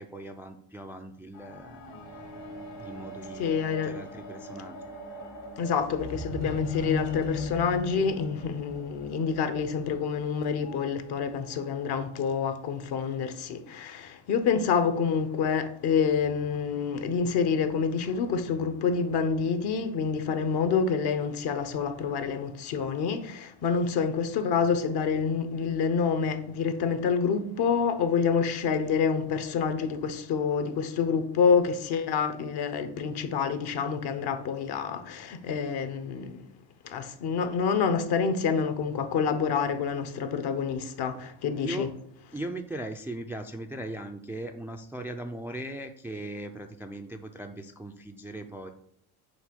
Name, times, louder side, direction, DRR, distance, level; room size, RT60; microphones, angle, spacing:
voice 1, 0.0-1.8 2.8-3.5 3.8-4.8 41.6-41.9 42.3-48.7, right 1 dB, 5° right, 0.3 m, -39 dB
sound 1, 1.3-10.9 11.7-11.8, left 2 dB, 80° left, 2.0 m, -39 dB
voice 2, 3.4-3.9 5.6-36.4 36.8-41.9, left 6 dB, 55° left, 1.0 m, -27 dB
6.4 x 2.9 x 5.3 m
supercardioid pair, 80°, 47 cm